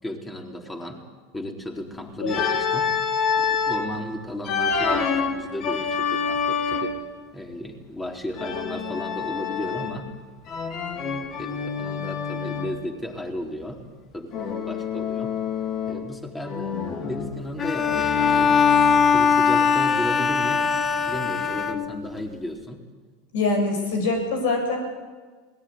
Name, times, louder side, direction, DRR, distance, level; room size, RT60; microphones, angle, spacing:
voice 1, 0.0-1.0 1.3-2.9 3.4-7.0 7.3-10.1 11.4-13.9 14.1-15.3 15.9-18.7 19.1-20.6 21.1-22.8, left 1 dB, 15° left, 3 dB, 4.1 m, -34 dB
Organ, 2.3-3.9 4.4-7.1 8.4-10.1 10.5-12.8 14.3-16.1 16.4-19.2, left 6 dB, 45° left, 2.8 m, -27 dB
Bowed string instrument, 17.6-22.2, left 6 dB, 30° left, 1.5 m, -21 dB
voice 2, 23.3-24.8, left 3 dB, 75° left, 4 dB, 7.0 m, -24 dB
21.0 x 18.5 x 9.7 m, 1.5 s
hypercardioid pair, 90°, 0 cm